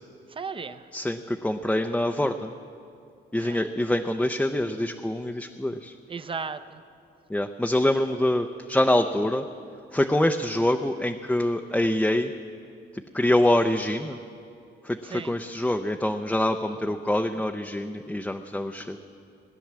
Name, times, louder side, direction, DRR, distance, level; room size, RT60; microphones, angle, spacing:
voice 1, 0.3-0.9 3.4-3.7 6.1-6.8 15.0-15.4 16.7-17.4, right 5 dB, 25° right, 11 dB, 0.8 m, -37 dB
voice 2, 0.9-2.5 3.3-5.9 7.3-9.4 9.9-12.3 13.1-14.2 14.8-19.0, left 1 dB, 5° left, 4 dB, 0.6 m, -25 dB
18.5 x 10.0 x 7.5 m, 2.4 s
cardioid pair, 90°, 20 cm